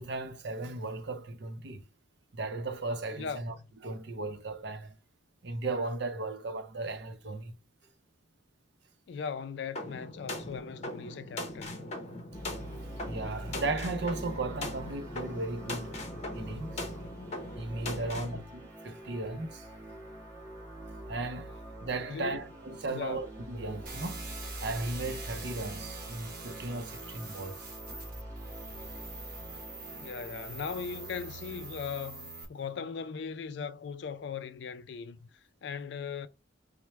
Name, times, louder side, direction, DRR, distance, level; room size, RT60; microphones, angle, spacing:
voice 1, 0.0-1.8 2.3-3.5 3.8-5.0 5.4-7.5 12.8-15.9 16.3-16.9 17.6-19.7 21.0-21.6 21.8-24.3 24.6-28.0, right 2 dB, 60° right, 0.7 m, -36 dB
voice 2, 9.1-11.7 17.9-18.5 22.1-22.4 22.9-23.2 29.9-36.3, left 6 dB, 65° left, 0.3 m, -39 dB
sound 1, 9.7-18.4, left 1 dB, 35° left, 0.7 m, -40 dB
sound 2, 12.3-31.8, right 1 dB, 15° right, 1.1 m, -45 dB
sound 3, 23.9-32.5, right 3 dB, 45° right, 1.1 m, -45 dB
4.5 x 2.1 x 3.1 m
head